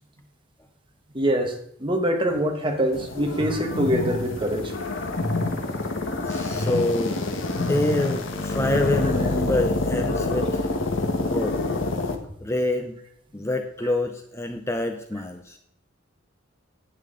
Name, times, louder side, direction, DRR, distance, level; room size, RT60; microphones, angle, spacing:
voice 1, 1.1-4.7, equal, 25° right, 3 dB, 1.4 m, -24 dB
sound 1, 2.9-12.1, left 2 dB, 75° left, 1.3 m, -27 dB
voice 2, 6.2-7.3 7.5-10.7 11.2-11.6 12.4-13.0 13.3-15.6, left 1 dB, 15° left, 5 dB, 0.6 m, -26 dB
11.0 x 8.7 x 3.8 m, 0.69 s
head